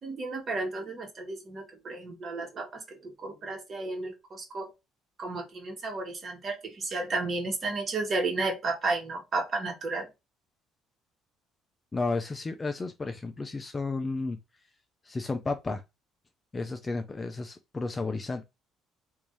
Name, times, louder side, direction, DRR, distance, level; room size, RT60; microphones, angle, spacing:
voice 1, 0.0-4.7 5.2-10.1, right 3 dB, 35° right, 1.3 m, -33 dB
voice 2, 11.9-14.4 15.0-15.8 16.5-18.5, left 3 dB, 20° left, 0.4 m, -32 dB
3.3 x 2.6 x 3.0 m
cardioid pair, 120°, 0 cm